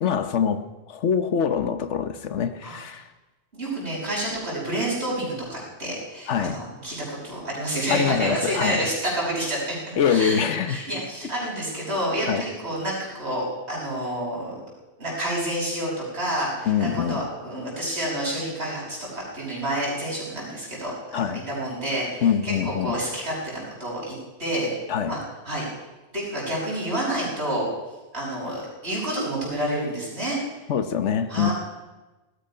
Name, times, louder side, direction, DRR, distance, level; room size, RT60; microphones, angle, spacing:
voice 1, 0.0-3.1 6.3-6.6 7.9-8.9 10.0-10.8 12.3-12.4 16.7-17.3 21.1-21.4 22.2-23.0 24.9-25.2 30.7-31.5, left 7 dB, 80° left, 11 dB, 1.3 m, -24 dB
voice 2, 3.5-14.6 15.0-24.7 25.0-25.2 25.4-25.7 26.1-27.7 28.1-30.4 31.3-31.5, right 1 dB, 65° right, -5 dB, 6.3 m, -29 dB
17.5 x 13.5 x 5.7 m, 1.1 s
omnidirectional pair, 1.2 m